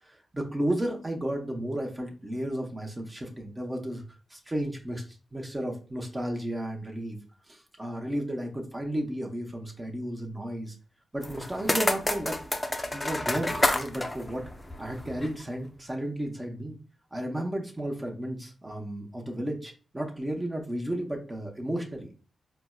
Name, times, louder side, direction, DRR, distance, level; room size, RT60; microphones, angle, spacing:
voice 1, 0.0-4.0 4.3-5.0 5.3-7.2 7.5-10.7 11.1-12.3 12.9-14.4 14.8-16.8 17.1-22.1, right 1 dB, 25° right, 0 dB, 0.7 m, -33 dB
sound 1, 11.2-15.4, left 1 dB, 25° left, 0.5 m, -29 dB
4.3 x 2.1 x 2.2 m, 0.37 s
supercardioid pair, 45°, 0 cm